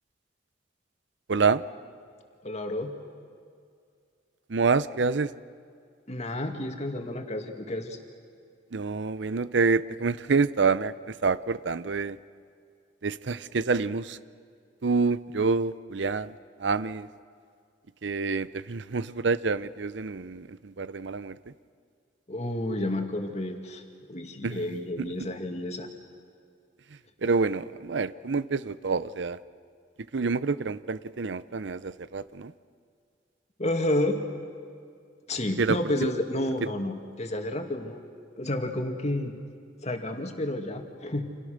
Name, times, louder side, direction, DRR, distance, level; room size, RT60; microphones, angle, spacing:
voice 1, 1.3-1.6 4.5-5.3 8.7-12.2 13.0-14.2 14.8-17.1 18.0-21.5 24.4-25.1 27.2-29.4 30.1-32.5 35.6-35.8, right 4 dB, 70° right, 16 dB, 0.6 m, -27 dB
voice 2, 2.4-2.9 6.1-8.0 22.3-23.8 24.1-25.9 33.6-34.2 35.3-38.0 38.4-39.3 39.8-41.2, left 1 dB, 35° left, 5 dB, 2.2 m, -30 dB
29.5 x 27.0 x 6.6 m, 2.3 s
head